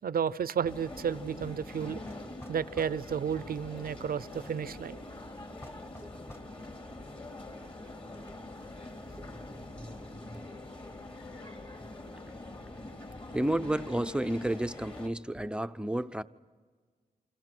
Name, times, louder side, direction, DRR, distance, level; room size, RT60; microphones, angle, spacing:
voice 1, 0.0-2.0 2.5-5.0, right 7 dB, 70° right, 17 dB, 0.6 m, -32 dB
sound 1, 0.7-15.1, left 2 dB, 35° left, 3.0 m, -44 dB
sound 2, 2.1-3.0 5.6-6.5, left 1 dB, 15° left, 1.4 m, -48 dB
voice 2, 13.3-16.2, right 1 dB, 5° right, 10 dB, 0.6 m, -31 dB
28.5 x 26.5 x 6.1 m, 1.5 s
wide cardioid pair, 135°, 16 cm